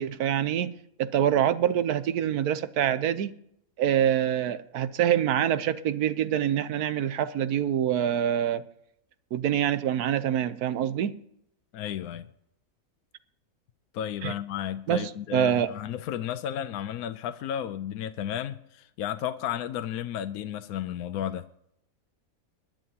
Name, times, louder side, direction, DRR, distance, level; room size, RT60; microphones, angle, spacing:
voice 1, 0.0-3.3 3.8-8.6 9.3-11.1 14.2-14.3 14.9-15.7, right 10 dB, 90° right, 1.3 m, -25 dB
voice 2, 11.7-12.2 13.9-21.5, left 10 dB, 80° left, 1.1 m, -33 dB
22.0 x 10.5 x 2.8 m
omnidirectional pair, 1.6 m